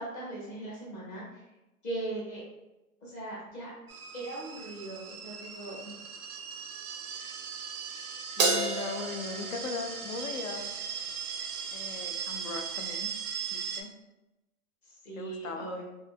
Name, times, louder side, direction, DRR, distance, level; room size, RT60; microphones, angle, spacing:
voice 1, 0.0-1.4 1.8-2.4 3.0-3.7 4.1-6.0 14.8-15.8, right 2 dB, 20° left, -5 dB, 0.7 m, -39 dB
sound 1, 3.9-13.8, right 6 dB, 80° right, 0.6 m, -39 dB
voice 2, 8.3-11.1 11.7-13.1 13.5-13.9 15.1-15.7, left 4 dB, 70° left, 5 dB, 0.6 m, -39 dB
Crash cymbal, 8.4-10.9, right 3 dB, 30° right, 0.4 m, -31 dB
3.7 x 2.1 x 2.2 m, 0.97 s
hypercardioid pair, 135°, 43 cm